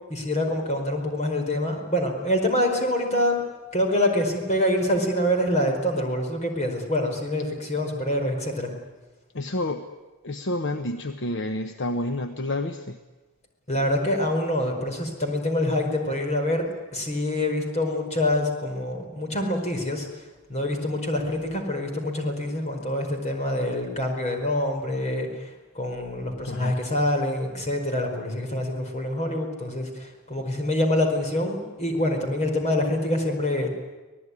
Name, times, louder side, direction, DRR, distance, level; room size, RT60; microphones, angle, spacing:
voice 1, 0.1-3.4 3.7-8.7 13.7-16.7 16.9-20.2 20.5-33.7, left 1 dB, 30° left, 3 dB, 4.8 m, -26 dB
voice 2, 9.3-9.8 10.2-13.0 26.4-26.8, left 1 dB, 55° left, 7 dB, 1.1 m, -29 dB
25.5 x 18.5 x 9.8 m, 1.2 s
head